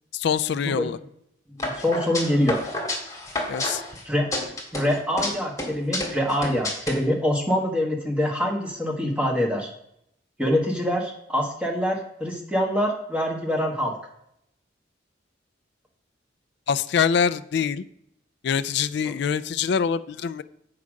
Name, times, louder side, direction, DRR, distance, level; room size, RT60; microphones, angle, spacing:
voice 1, 0.1-1.0 3.5-3.8 16.7-17.8 18.4-20.4, left 7 dB, 60° left, 14 dB, 0.3 m, -24 dB
voice 2, 1.5-2.6 4.0-4.3 4.7-9.7 10.4-13.9, equal, 5° right, 0 dB, 1.5 m, -25 dB
sound 1, 1.6-4.0 4.3-5.3 5.6-6.9, left 2 dB, 15° left, 2.0 m, -29 dB
8.3 x 4.8 x 6.3 m, 0.75 s
head